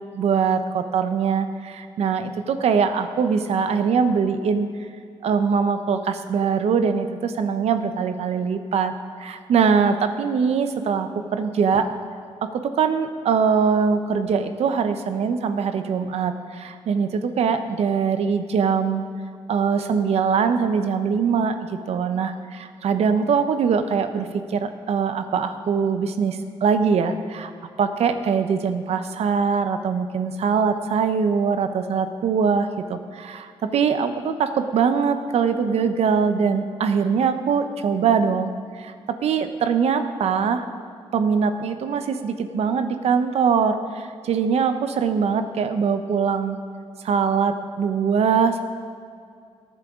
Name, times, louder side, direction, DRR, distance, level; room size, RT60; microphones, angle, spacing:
voice 1, 0.1-4.7 5.2-8.9 9.2-11.9 12.5-19.0 19.5-27.5 27.8-38.9 39.2-40.6 41.1-46.6 47.0-48.6, right 6 dB, 80° right, 9 dB, 0.8 m, -22 dB
18.5 x 10.0 x 3.7 m, 2.3 s
cardioid pair, 75°, 11 cm